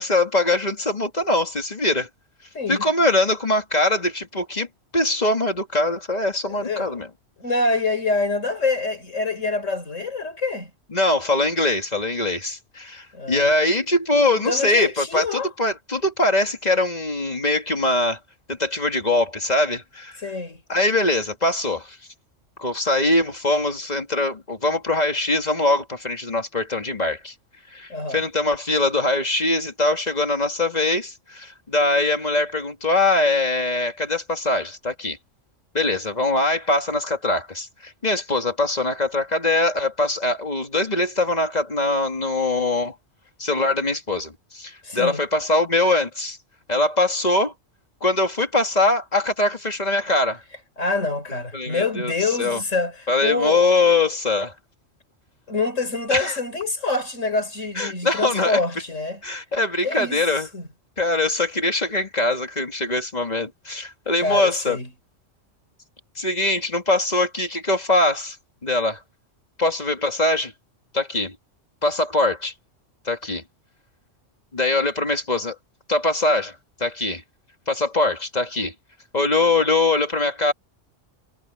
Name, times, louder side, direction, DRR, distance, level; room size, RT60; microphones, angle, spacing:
voice 1, 0.0-2.1 2.7-4.7 4.9-7.1 10.9-18.2 18.5-20.2 20.7-22.0 22.6-27.3 27.7-35.2 35.7-42.9 43.4-46.4 46.7-47.5 48.0-50.4 51.5-52.1 52.4-52.6 53.1-54.5 56.1-56.4 57.8-58.6 59.2-60.5 61.0-64.8 66.2-68.4 68.6-69.0 69.6-70.5 70.9-71.4 71.8-72.5 73.1-73.4 74.5-75.6 75.9-77.2 77.7-78.7 79.1-80.5, left 2 dB, 30° left, 2.5 m, -22 dB
voice 2, 2.5-2.8 6.5-7.0 7.4-10.7 13.1-13.5 14.4-15.5 20.2-20.6 27.9-28.2 44.8-45.2 50.8-53.6 55.5-59.2 59.8-60.2 60.5-60.6 64.2-64.9, left 3 dB, 75° left, 4.3 m, -26 dB
omnidirectional pair, 1.3 m